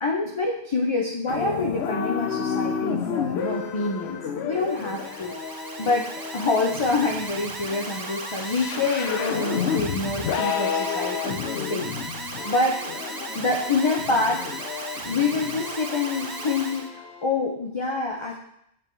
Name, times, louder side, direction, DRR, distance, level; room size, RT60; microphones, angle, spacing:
voice 1, 0.0-5.3 5.8-11.4 11.7-11.9 12.4-12.9 13.3-14.4 15.0-18.4, left 3 dB, 35° left, 0 dB, 0.6 m, -26 dB
sound 1, 1.3-17.2, left 7 dB, 80° left, 0.9 m, -31 dB
Alarm, 4.5-16.9, right 3 dB, 35° right, 0.4 m, -36 dB
8.6 x 3.6 x 4.5 m, 0.73 s
omnidirectional pair, 1.1 m